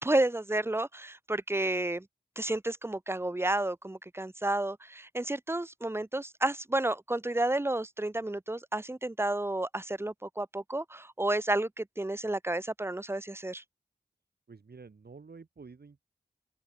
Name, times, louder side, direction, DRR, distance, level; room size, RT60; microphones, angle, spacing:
voice 1, 0.0-2.1 2.4-13.6, right 1 dB, 15° right, 0.6 m, -31 dB
voice 2, 14.5-16.0, right 4 dB, 85° right, 4.0 m, -50 dB
open air
wide cardioid pair, 65°, 16 cm